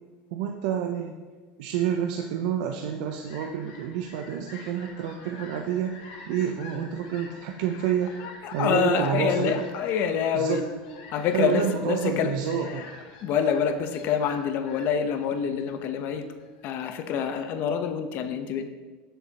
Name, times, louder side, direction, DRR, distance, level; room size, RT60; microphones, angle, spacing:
voice 1, 0.3-1.1 1.6-8.2 8.5-9.7 10.3-10.6 11.3-12.9, right 8 dB, 75° right, 4 dB, 0.7 m, -28 dB
Fowl, 2.7-16.6, left 3 dB, 85° left, 2.3 m, -48 dB
voice 2, 8.2-10.6 11.1-12.9 13.2-16.2 16.6-18.7, left 7 dB, 55° left, 7 dB, 0.9 m, -27 dB
16.0 x 6.9 x 2.9 m, 1.3 s
supercardioid pair, 110°, 4 cm